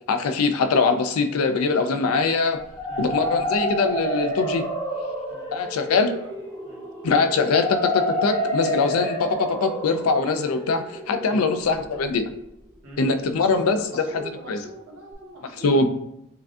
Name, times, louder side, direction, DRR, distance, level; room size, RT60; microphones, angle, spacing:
voice 1, 0.1-2.6 3.0-4.7 5.5-6.1 7.0-12.3 13.0-13.8 14.5-14.6 15.6-15.9, left 4 dB, 75° left, 8 dB, 0.4 m, -22 dB
sound 1, 2.6-12.4, equal, 15° left, 0.8 m, -29 dB
voice 2, 2.9-3.5 5.3-5.5 5.9-6.3 6.6-6.8 11.3-11.5 12.8-15.7, right 2 dB, 65° right, -3 dB, 1.3 m, -42 dB
5.7 x 2.3 x 2.5 m, 0.80 s
head